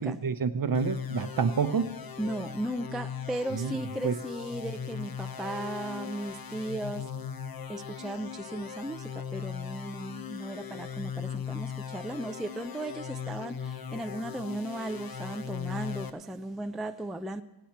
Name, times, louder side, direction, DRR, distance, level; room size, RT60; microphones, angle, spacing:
voice 1, 0.0-1.9 3.5-3.8 4.0-4.2, right 6 dB, 50° right, 11 dB, 0.7 m, -28 dB
sound 1, 0.7-16.1, left 8 dB, 50° left, 0.7 m, -39 dB
voice 2, 2.2-7.1 7.7-17.4, right 1 dB, ahead, 8 dB, 0.3 m, -36 dB
18.5 x 8.0 x 4.3 m, 1.0 s
wide cardioid pair, 75°, 46 cm